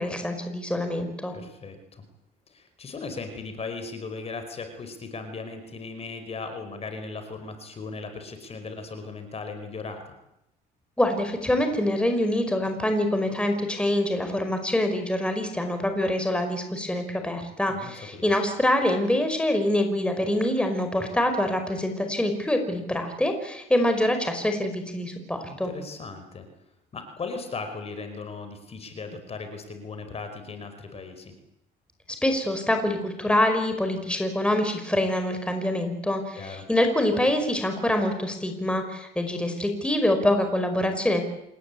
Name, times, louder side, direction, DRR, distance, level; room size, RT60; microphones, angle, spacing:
voice 1, 0.0-1.3 11.0-25.7 32.2-41.2, left 1 dB, 5° left, 6 dB, 5.3 m, -25 dB
voice 2, 1.3-2.0 2.5-10.1 17.7-18.3 25.4-26.5 26.9-31.3 36.4-36.6, left 4 dB, 35° left, 8 dB, 5.0 m, -37 dB
28.0 x 20.0 x 8.6 m, 0.83 s
cardioid pair, 110°, 17 cm